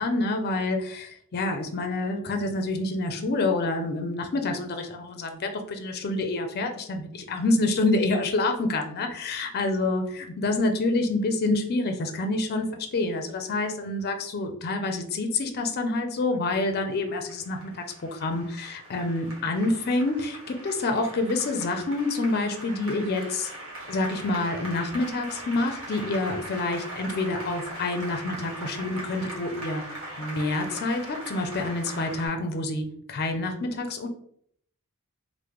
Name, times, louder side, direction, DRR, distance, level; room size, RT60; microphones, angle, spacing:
voice 1, 0.0-12.7 12.9-17.8 18.1-23.5 23.9-29.8 30.2-34.1, left 2 dB, 45° left, 5 dB, 0.4 m, -27 dB
Applause, 17.0-32.3, right 1 dB, 60° right, 1.1 m, -40 dB
3.0 x 2.1 x 3.4 m, 0.64 s
head